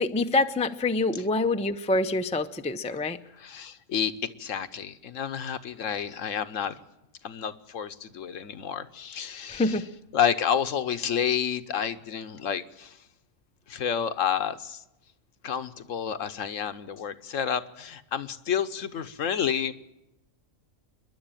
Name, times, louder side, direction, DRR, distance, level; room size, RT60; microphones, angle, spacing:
voice 1, 0.0-3.2 9.5-9.9, left 2 dB, 10° left, 8 dB, 0.4 m, -26 dB
voice 2, 3.4-4.1 4.4-6.8 7.2-9.8 10.1-13.0 13.7-14.8 15.4-19.7, left 8 dB, 65° left, 11 dB, 1.2 m, -30 dB
27.5 x 11.0 x 9.0 m, 0.93 s
omnidirectional pair, 1.4 m